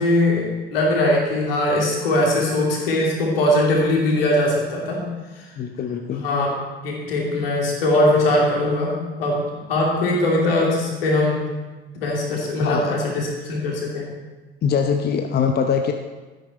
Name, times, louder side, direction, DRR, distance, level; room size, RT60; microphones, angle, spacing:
voice 1, 0.0-5.0 6.2-6.5 6.8-8.9 9.2-9.4 9.7-11.5 11.9-14.1, left 1 dB, 70° left, -2 dB, 2.8 m, -20 dB
voice 2, 5.6-6.3 12.6-12.9 14.6-15.9, left 6 dB, 35° left, 5 dB, 0.8 m, -22 dB
12.5 x 10.5 x 4.3 m, 1.3 s
figure-of-eight pair, 60°, 30 cm